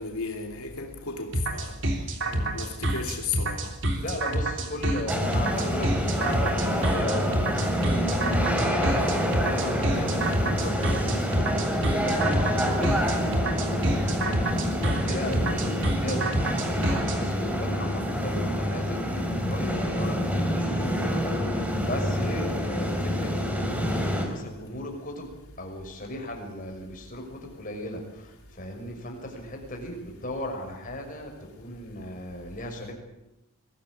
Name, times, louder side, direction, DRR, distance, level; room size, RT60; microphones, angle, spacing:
voice 1, 0.0-1.7 2.5-3.7, left 5 dB, 85° left, 2.7 m, -34 dB
sound 1, 1.3-17.2, right 1 dB, 55° right, 3.4 m, -28 dB
voice 2, 2.2-3.0 3.9-9.3 9.5-32.9, left 1 dB, 35° left, 6.2 m, -37 dB
sound 2, 5.1-24.2, equal, 5° right, 4.0 m, -27 dB
23.5 x 16.5 x 9.8 m
head